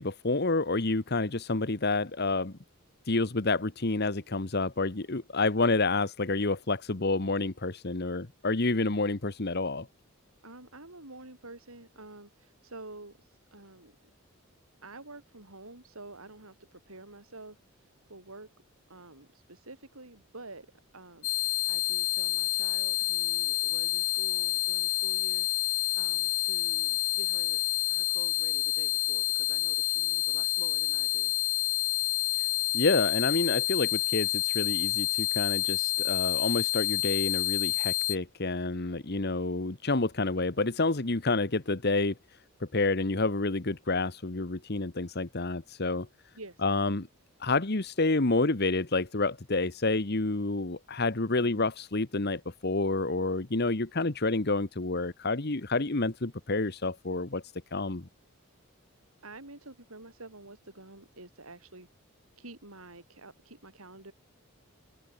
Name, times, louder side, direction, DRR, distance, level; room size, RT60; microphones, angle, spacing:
voice 1, 0.0-2.5 3.0-9.9 32.4-32.5 32.7-46.1 46.6-47.1 47.4-57.4 57.7-58.1, left 3 dB, 50° left, 1.3 m, -29 dB
voice 2, 10.4-14.1 14.8-18.5 18.9-27.6 27.9-31.3 46.3-46.6 59.2-61.9 62.4-64.1, right 2 dB, 90° right, 7.0 m, -49 dB
sound 1, 21.2-38.2, left 17 dB, 90° left, 1.3 m, -28 dB
head